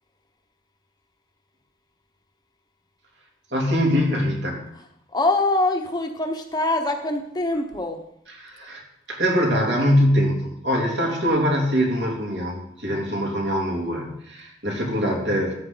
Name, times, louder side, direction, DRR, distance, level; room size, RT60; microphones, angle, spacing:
voice 1, 3.5-4.6 8.4-8.8 9.1-15.5, equal, 70° right, -2 dB, 3.2 m, -23 dB
voice 2, 5.1-8.0, left 2 dB, 20° left, 4 dB, 1.0 m, -24 dB
13.5 x 8.9 x 4.0 m, 0.74 s
head